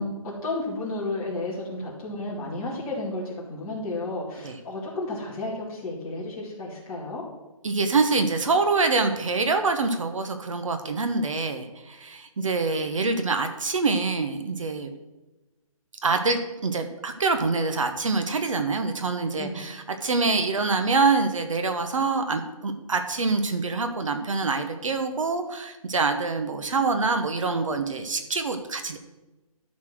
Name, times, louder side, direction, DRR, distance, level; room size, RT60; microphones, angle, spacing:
voice 1, 0.0-7.2 19.4-19.7, left 2 dB, 15° left, -6 dB, 2.3 m, -32 dB
voice 2, 7.6-14.9 16.0-29.0, right 3 dB, 60° right, 7 dB, 1.1 m, -25 dB
12.5 x 4.3 x 6.1 m, 1.1 s
hypercardioid pair, 170°, 18 cm